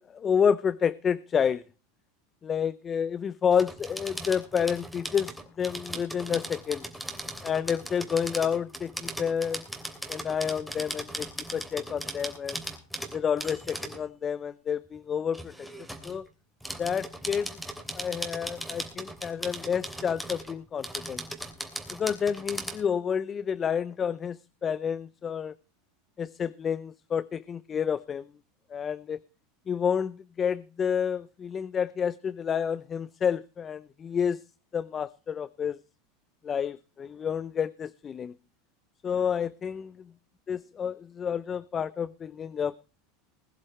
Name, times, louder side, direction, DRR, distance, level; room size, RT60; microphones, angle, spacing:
voice 1, 0.0-1.6 2.4-6.9 7.4-9.6 10.1-12.6 13.1-15.5 16.0-16.3 16.8-17.6 17.9-21.2 21.9-25.5 26.2-28.3 28.7-29.2 29.7-34.4 34.7-35.8 36.4-38.4 39.0-39.9 40.5-42.8, left 7 dB, 30° left, 0.6 m, -29 dB
sound 1, 3.5-14.0 15.3-16.2 16.6-22.8, right 1 dB, ahead, 3.0 m, -38 dB
21.0 x 11.0 x 3.2 m
supercardioid pair, 110°, 0 cm